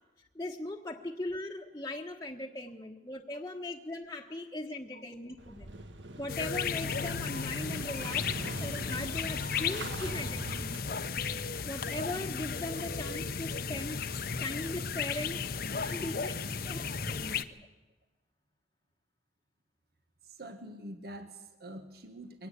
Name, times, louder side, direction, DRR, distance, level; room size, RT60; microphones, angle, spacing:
voice 1, 0.3-5.7 6.2-11.1 11.6-14.0 14.4-15.4 15.8-16.4 16.6-17.7, left 2 dB, 20° left, -1 dB, 1.3 m, -39 dB
Motorcycle / Engine starting, 5.4-11.2, right 1 dB, 90° right, 1.9 m, -42 dB
sound 1, 6.3-17.4, left 5 dB, 55° left, 0.9 m, -35 dB
voice 2, 20.2-22.5, right 1 dB, 60° right, 7 dB, 1.6 m, -46 dB
23.0 x 18.0 x 8.3 m, 1.1 s
head